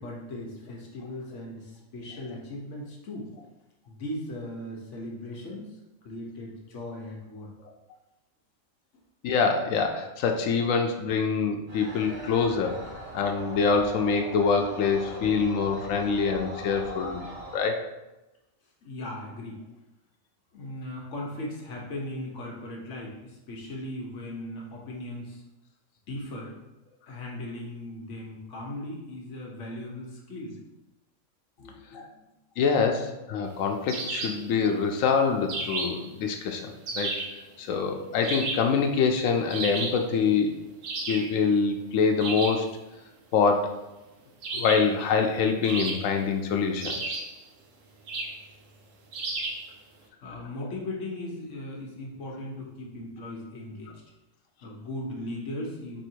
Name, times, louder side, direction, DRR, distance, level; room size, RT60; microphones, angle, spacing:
voice 1, 0.0-3.3 3.9-5.8 6.0-7.5 17.0-17.1 18.8-19.6 20.5-25.4 26.1-26.6 27.1-30.6 31.6-32.3 50.2-54.0 54.6-56.0, left 1 dB, 70° left, -2 dB, 1.3 m, -38 dB
voice 2, 9.2-12.8 13.1-17.8 31.9-32.0 32.6-37.1 37.6-40.5 41.1-42.7 43.3-43.7 44.5-47.2, left 5 dB, 85° left, 4 dB, 1.0 m, -25 dB
sound 1, 11.7-17.6, equal, 55° right, 1.2 m, -40 dB
sound 2, 33.9-34.5 35.5-36.1 36.9-37.4 38.2-38.8 39.5-40.1 40.8-41.3 42.2-42.7 44.4-45.0 45.6-46.3 46.8-47.4 48.1-48.4 49.1-49.7, right 3 dB, 80° right, 1.1 m, -33 dB
4.3 x 2.8 x 4.4 m, 1.0 s
omnidirectional pair, 1.3 m